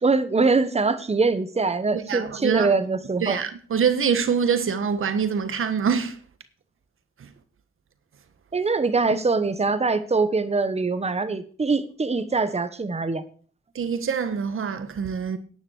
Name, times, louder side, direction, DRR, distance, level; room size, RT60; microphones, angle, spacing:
voice 1, 0.0-3.4 8.5-13.2, right 4 dB, 30° right, 1.3 m, -23 dB
voice 2, 1.9-2.7 3.2-6.2 13.7-15.4, right 6 dB, 75° right, 1.4 m, -25 dB
10.5 x 9.5 x 6.5 m
cardioid pair, 85°, 21 cm